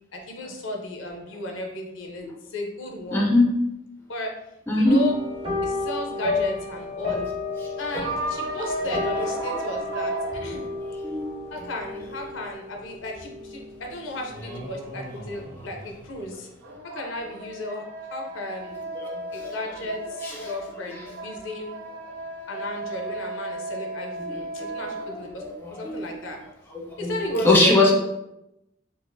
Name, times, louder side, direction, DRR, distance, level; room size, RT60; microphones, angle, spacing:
voice 1, 0.1-3.3 4.1-4.3 4.8-5.1 5.6-7.3 7.8-10.7 11.5-16.5 16.9-18.8 19.3-21.7 22.5-26.4 27.0-27.9, left 1 dB, 75° left, 2 dB, 0.6 m, -34 dB
voice 2, 3.1-3.5 4.7-5.0 7.6-7.7 10.5-10.7 11.0-11.4 18.9-19.6 20.2-20.5 20.8-21.0 24.2-24.9 25.4-25.9 26.8-27.9, left 2 dB, 10° left, -2 dB, 0.4 m, -23 dB
sound 1, 4.9-14.4 14.7-15.1 15.5-15.6, left 3 dB, 30° right, 0.7 m, -32 dB
sound 2, 8.0-11.6 16.3-25.5, right 2 dB, 85° right, 0.6 m, -34 dB
sound 3, 14.3-16.8, right 1 dB, 50° right, 1.3 m, -41 dB
3.9 x 2.5 x 2.6 m, 0.87 s
head